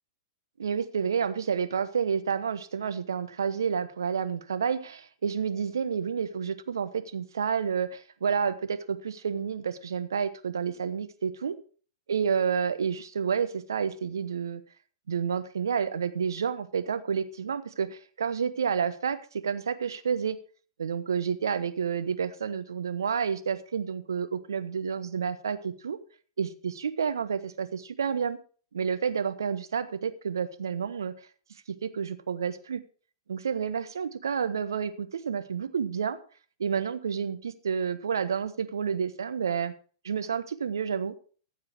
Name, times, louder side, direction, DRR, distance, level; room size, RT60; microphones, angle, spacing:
voice 1, 0.6-11.5 12.1-14.6 15.1-20.4 20.8-26.0 26.4-28.4 28.7-31.1 31.7-32.8 33.3-36.2 36.6-39.7 40.0-41.1, right 6 dB, 75° right, 12 dB, 1.0 m, -30 dB
14.5 x 7.4 x 4.6 m, 0.41 s
figure-of-eight pair, 105°, 2 cm